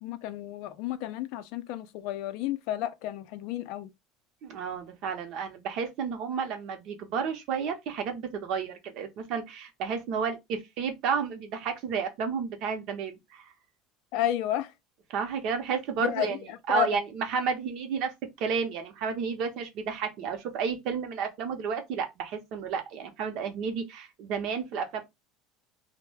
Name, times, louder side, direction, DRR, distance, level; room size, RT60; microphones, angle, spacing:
voice 1, 0.0-3.9 14.1-14.7 16.0-17.0, left 12 dB, 65° left, 0.3 m, -31 dB
voice 2, 4.4-13.4 15.1-16.4 16.7-25.0, right 6 dB, 55° right, 0.6 m, -31 dB
2.2 x 2.0 x 3.2 m
cardioid pair, 145°, 0 cm